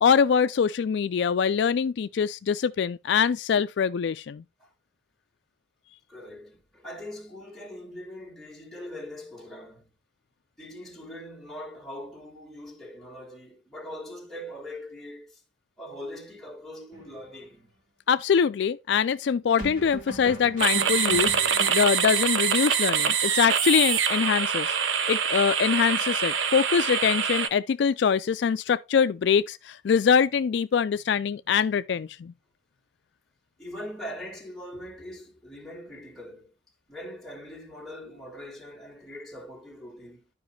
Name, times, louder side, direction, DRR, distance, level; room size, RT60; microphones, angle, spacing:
voice 1, 0.0-4.4 18.1-24.7 25.1-32.3, left 7 dB, 60° left, 0.3 m, -24 dB
voice 2, 6.1-9.9 10.6-15.4 15.8-17.7 33.6-36.5 36.9-40.3, left 1 dB, ahead, 2.2 m, -41 dB
sound 1, 16.9-17.2 19.6-22.2, right 1 dB, 45° right, 3.5 m, -38 dB
sound 2, 20.6-27.5, right 7 dB, 75° right, 0.8 m, -25 dB
12.0 x 5.1 x 3.2 m
head